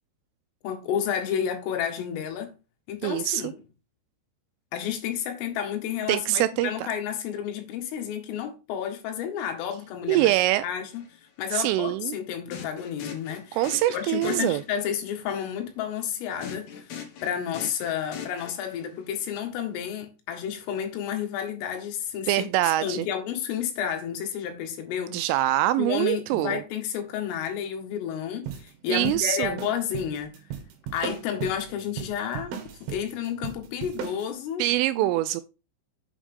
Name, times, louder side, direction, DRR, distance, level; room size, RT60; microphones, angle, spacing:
voice 1, 0.6-2.5 2.9-3.5 4.7-10.3 10.6-11.0 11.4-13.6 13.9-22.5 22.8-25.2 25.8-30.3 30.9-32.6 32.9-34.7 35.0-35.1, left 9 dB, 80° left, 4.4 m, -31 dB
voice 2, 3.0-3.5 6.1-6.9 10.1-10.6 11.5-12.2 13.5-14.6 22.3-23.1 25.1-26.6 28.9-29.6 34.6-35.4, right 15 dB, 85° right, 3.0 m, -24 dB
sound 1, 10.9-11.1 12.5-15.0 16.4-19.0, left 7 dB, 60° left, 3.4 m, -41 dB
sound 2, 28.5-34.3, right 8 dB, 60° right, 3.0 m, -37 dB
8.5 x 8.1 x 3.6 m
omnidirectional pair, 5.9 m